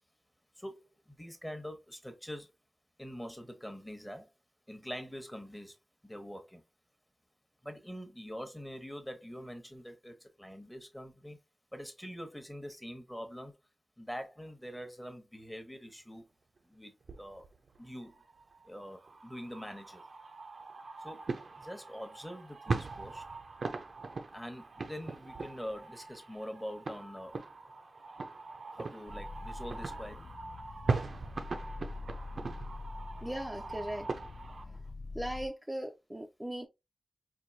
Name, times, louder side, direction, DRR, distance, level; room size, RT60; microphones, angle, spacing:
voice 1, 0.6-2.5 3.0-4.3 4.7-5.8 6.0-6.6 7.6-11.4 11.7-13.5 14.0-16.3 16.6-17.5 17.8-18.1 18.6-20.0 21.0-23.2 24.3-27.3 28.7-30.3, equal, 10° left, 1.0 m, -44 dB
sound 1, 17.1-34.7, right 3 dB, 75° right, 0.5 m, -40 dB
sound 2, 29.1-35.5, left 3 dB, 65° left, 0.3 m, -45 dB
voice 2, 33.2-34.1 34.6-34.8 35.1-36.7, right 1 dB, 10° right, 0.5 m, -39 dB
4.4 x 2.7 x 2.6 m
wide cardioid pair, 80°, 0 cm